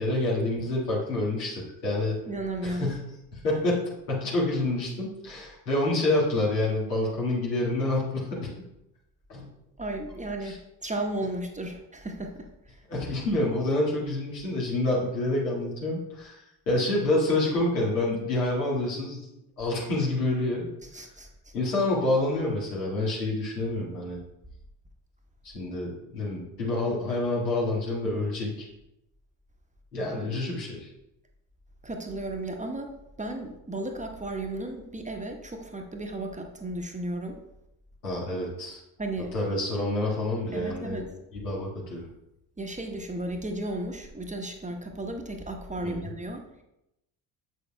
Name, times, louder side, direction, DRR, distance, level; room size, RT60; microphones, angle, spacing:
voice 1, 0.0-2.2 2.6-3.0 3.3-8.7 9.3-9.5 10.4-10.6 12.9-19.2 19.6-20.7 21.5-24.2 25.4-28.7 29.9-30.9 38.0-38.8 39.3-41.0 41.3-42.1 45.8-46.1, left 2 dB, 85° left, -4 dB, 1.8 m, -28 dB
voice 2, 2.3-2.9 9.8-12.5 20.9-21.3 31.8-32.9 33.2-37.4 39.0-39.3 40.5-41.0 42.6-46.6, right 1 dB, 15° right, 3 dB, 0.9 m, -34 dB
7.0 x 6.3 x 2.2 m, 0.87 s
hypercardioid pair, 50°, 47 cm